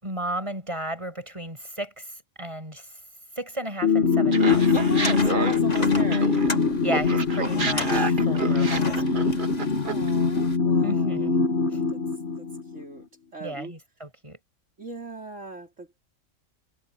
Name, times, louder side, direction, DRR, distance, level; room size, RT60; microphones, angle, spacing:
voice 1, 0.0-2.9 3.4-4.7 6.8-9.3 10.8-11.4 11.7-11.8 13.4-14.4, right 1 dB, 25° right, 7.4 m, -34 dB
sound 1, 3.8-12.8, left 4 dB, 55° left, 1.9 m, -23 dB
sound 2, 4.3-10.6, left 3 dB, 30° left, 2.1 m, -37 dB
Laughter, 4.3-6.6 6.9-10.1, right 4 dB, 40° right, 1.6 m, -30 dB
voice 2, 4.7-6.3 9.8-11.4 11.9-12.0 12.4-12.5 12.7-13.0 13.3-13.7 14.8-16.0, right 2 dB, 65° right, 4.3 m, -38 dB
omnidirectional pair, 1.3 m